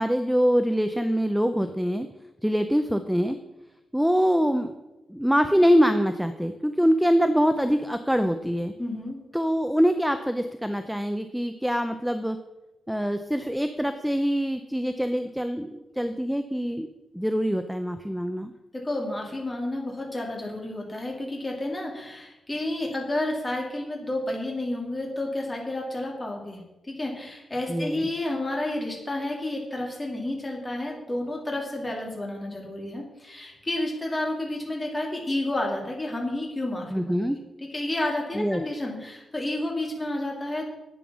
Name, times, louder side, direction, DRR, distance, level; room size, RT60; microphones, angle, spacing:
voice 1, 0.0-2.1 2.4-3.4 3.9-4.7 5.1-8.7 9.3-12.4 12.9-16.9 17.1-18.5 27.7-28.1 36.9-37.4 38.3-38.6, equal, ahead, 8 dB, 0.5 m, -24 dB
voice 2, 8.8-9.2 18.7-37.3 37.7-40.6, left 1 dB, 15° left, 0 dB, 2.5 m, -31 dB
10.5 x 8.7 x 6.1 m, 1.0 s
wide cardioid pair, 165°, 0 cm